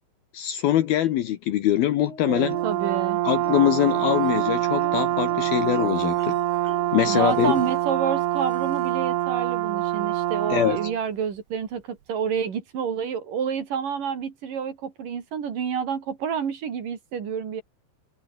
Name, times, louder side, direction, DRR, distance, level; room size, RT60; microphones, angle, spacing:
voice 1, 0.3-2.6 3.2-6.4 6.9-7.6 10.5-10.8, left 12 dB, 70° left, 2.9 m, -23 dB
sound 1, 2.0-3.0 3.4-9.1 10.3-10.4 10.8-10.9, left 1 dB, 15° left, 7.2 m, -45 dB
Brass instrument, 2.3-11.0, right 15 dB, 75° right, 3.1 m, -25 dB
voice 2, 2.6-3.2 7.1-17.6, right 7 dB, 55° right, 4.2 m, -29 dB
omnidirectional pair, 4.9 m